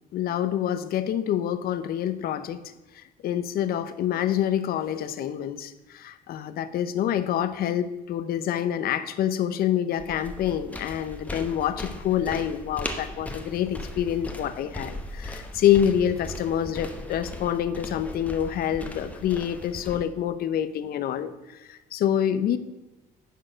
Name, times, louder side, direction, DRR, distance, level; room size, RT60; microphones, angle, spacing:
voice 1, 0.1-2.6 2.9-22.6, left 10 dB, 65° left, 13 dB, 0.7 m, -27 dB
sound 1, 10.0-20.0, left 1 dB, 10° left, 1.0 m, -38 dB
10.0 x 4.7 x 6.2 m, 1.1 s
cardioid pair, 110°, 17 cm